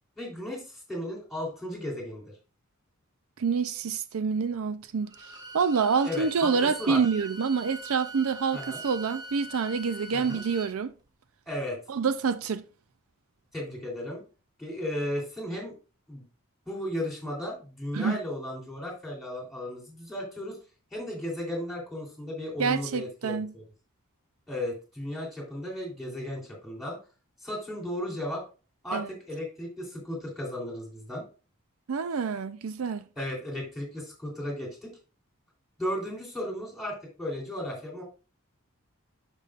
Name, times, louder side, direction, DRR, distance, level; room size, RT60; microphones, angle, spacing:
voice 1, 0.2-2.3 6.0-7.0 8.5-8.8 10.1-10.4 11.5-11.8 13.5-14.2 14.6-15.7 16.1-16.2 16.7-20.6 20.9-23.6 24.5-27.0 27.4-28.4 28.8-31.2 33.1-34.9 35.8-38.0, left 1 dB, ahead, 3.3 m, -35 dB
voice 2, 3.4-5.1 5.5-10.9 11.9-12.6 17.9-18.2 22.6-23.5 28.9-29.1 31.9-33.0, right 5 dB, 75° right, 0.5 m, -27 dB
Bowed string instrument, 5.0-10.7, right 2 dB, 15° right, 1.0 m, -42 dB
11.5 x 5.4 x 2.5 m
head